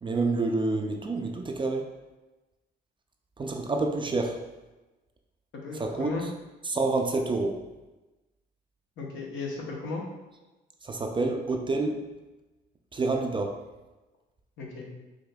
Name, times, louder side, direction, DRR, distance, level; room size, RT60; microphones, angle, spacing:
voice 1, 0.0-1.9 3.4-4.4 5.7-6.1 6.6-7.6 10.8-12.0 12.9-13.5, right 3 dB, 25° right, 3 dB, 0.4 m, -28 dB
voice 2, 5.5-6.2 9.0-10.0 14.6-14.9, left 3 dB, 70° left, -1 dB, 0.9 m, -35 dB
5.0 x 2.7 x 2.3 m, 1.1 s
cardioid pair, 90°, 20 cm